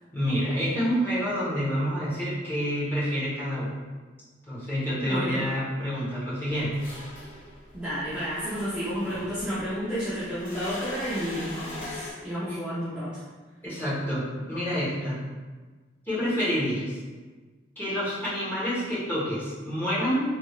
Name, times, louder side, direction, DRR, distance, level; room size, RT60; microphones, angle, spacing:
voice 1, 0.1-3.7 4.5-6.7 13.6-15.2 16.1-17.0 17.8-20.2, equal, 10° left, -10 dB, 1.0 m, -28 dB
voice 2, 4.9-5.5 7.7-13.1, equal, 5° right, -13 dB, 0.6 m, -31 dB
sound 1, 6.5-12.1, left 1 dB, 85° left, 0.9 m, -41 dB
3.4 x 3.1 x 2.3 m, 1.4 s
head